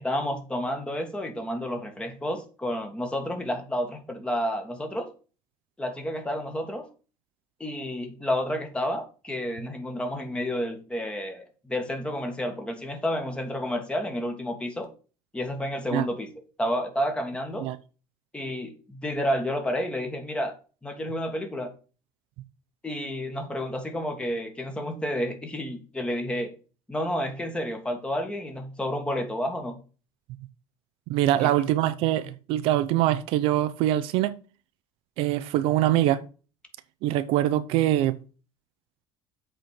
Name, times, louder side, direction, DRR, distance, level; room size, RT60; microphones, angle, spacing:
voice 1, 0.0-5.1 5.8-6.9 7.6-14.9 15.3-16.3 16.6-17.7 18.3-20.5 20.8-21.7 22.8-26.5 26.9-29.8 31.4-31.5, equal, 10° left, 1.8 m, -30 dB
voice 2, 31.1-34.3 35.2-36.2 37.0-38.2, right 13 dB, 70° right, 0.7 m, -23 dB
7.8 x 4.4 x 6.5 m
cardioid pair, 125°, 10 cm